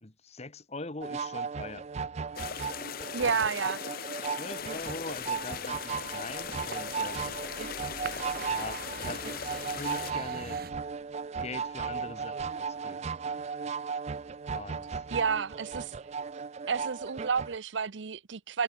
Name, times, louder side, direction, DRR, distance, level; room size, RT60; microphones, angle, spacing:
voice 1, 0.0-1.9 3.3-3.5 4.3-7.4 8.5-9.2 9.7-10.7 11.4-13.2 14.5-15.0, left 2 dB, 35° left, 1.5 m, -42 dB
sound 1, 1.0-17.6, right 5 dB, 35° right, 0.4 m, -36 dB
sound 2, 2.4-10.1, left 8 dB, 50° left, 0.6 m, -39 dB
voice 2, 3.1-3.8 15.1-15.9 16.7-18.6, right 5 dB, 75° right, 0.7 m, -30 dB
sound 3, 4.6-10.7, right 4 dB, 55° right, 2.5 m, -46 dB
head